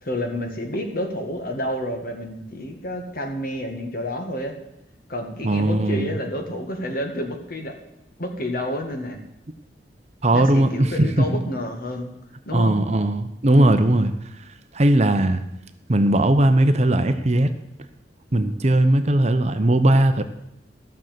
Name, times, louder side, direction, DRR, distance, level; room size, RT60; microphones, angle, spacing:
voice 1, 0.0-4.6 5.1-7.8 8.2-9.2 10.3-12.1 12.5-12.7, left 1 dB, 55° left, 4 dB, 1.9 m, -29 dB
voice 2, 5.4-6.1 10.2-11.4 12.5-14.1 14.7-15.4 15.9-17.5 18.3-20.2, right 1 dB, 40° right, 9 dB, 0.8 m, -18 dB
13.5 x 6.6 x 7.6 m, 0.85 s
head